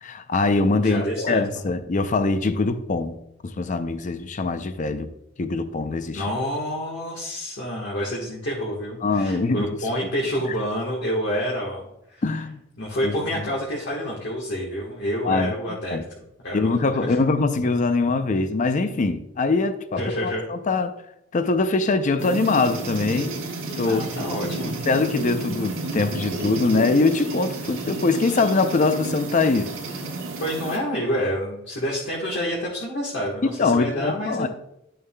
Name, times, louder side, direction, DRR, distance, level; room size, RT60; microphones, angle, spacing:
voice 1, 0.0-3.2 3.4-5.1 5.4-6.2 9.0-9.7 12.2-12.6 13.0-13.1 15.2-15.5 15.9-16.0 16.5-20.9 21.3-23.3 23.8-24.3 24.6-29.8 33.4-34.5, left 3 dB, 40° left, 0.5 m, -23 dB
voice 2, 0.8-1.4 6.1-12.2 12.8-16.0 16.4-16.7 17.1-17.2 20.0-20.4 23.8-24.8 30.4-34.5, equal, 60° left, 1.4 m, -28 dB
sound 1, 22.2-30.8, right 2 dB, 70° right, 1.4 m, -31 dB
10.5 x 6.6 x 2.3 m
head